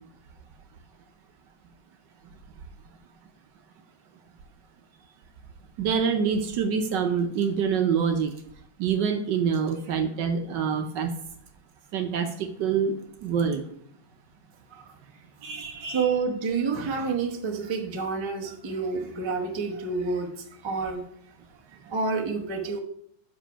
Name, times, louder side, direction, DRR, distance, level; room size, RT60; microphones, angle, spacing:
voice 1, 5.8-8.3 8.8-11.2 11.9-12.9 13.2-13.6 15.4-16.1, right 6 dB, 70° right, 6 dB, 1.2 m, -26 dB
voice 2, 15.8-20.3 20.6-21.0 21.8-22.8, right 4 dB, 25° right, 0 dB, 0.6 m, -28 dB
6.9 x 5.0 x 5.6 m, 0.67 s
omnidirectional pair, 2.2 m